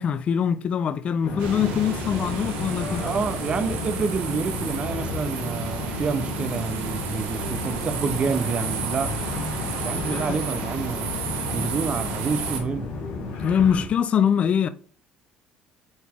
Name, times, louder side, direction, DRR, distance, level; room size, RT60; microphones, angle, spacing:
voice 1, 0.0-3.1 10.1-10.4 13.4-14.7, left 8 dB, 45° left, 0.5 m, -23 dB
sound 1, 1.2-13.8, left 3 dB, 75° left, 2.1 m, -32 dB
sound 2, 1.4-12.6, right 5 dB, 90° right, 1.7 m, -32 dB
voice 2, 3.0-9.2 9.8-11.1 11.5-12.9, right 5 dB, 40° right, 0.7 m, -28 dB
8.7 x 4.1 x 3.6 m
supercardioid pair, 95°, 3 cm